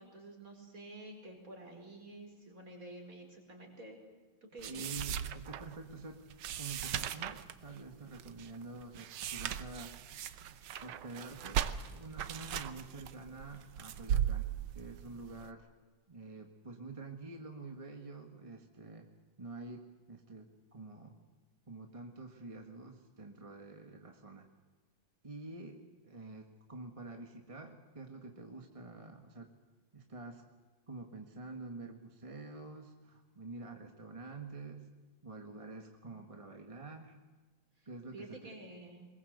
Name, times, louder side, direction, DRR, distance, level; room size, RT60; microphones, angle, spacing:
voice 1, 0.0-4.0 4.5-4.9 36.0-36.2 37.8-39.1, right 2 dB, 40° right, 2 dB, 5.1 m, -50 dB
voice 2, 4.6-10.0 10.8-11.6 11.9-15.7 16.1-19.1 19.4-21.2 21.7-24.5 25.2-29.5 29.9-30.4 30.9-34.9 35.2-37.2 37.8-38.4, right 3 dB, 20° right, 3 dB, 1.5 m, -48 dB
sound 1, 4.6-15.5, right 9 dB, 90° right, 1.8 m, -38 dB
23.0 x 21.5 x 8.0 m, 1.3 s
omnidirectional pair, 2.2 m